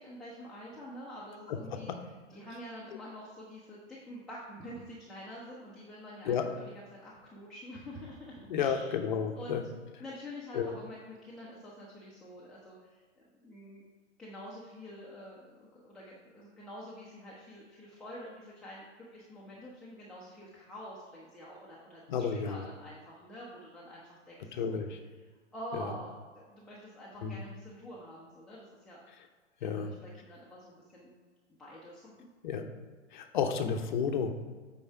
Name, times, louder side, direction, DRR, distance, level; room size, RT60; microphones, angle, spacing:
voice 1, 0.0-8.9 9.4-9.6 10.0-13.8 14.2-24.7 25.5-29.0 29.6-31.1 31.6-32.3, equal, ahead, -7 dB, 0.7 m, -47 dB
voice 2, 8.5-9.6 10.5-10.7 22.1-22.7 24.5-25.0 25.7-25.9 27.2-27.4 29.6-29.9 32.4-32.6 33.1-34.3, left 7 dB, 40° left, 5 dB, 0.8 m, -31 dB
8.6 x 4.7 x 4.6 m, 1.5 s
figure-of-eight pair, 115°, 38 cm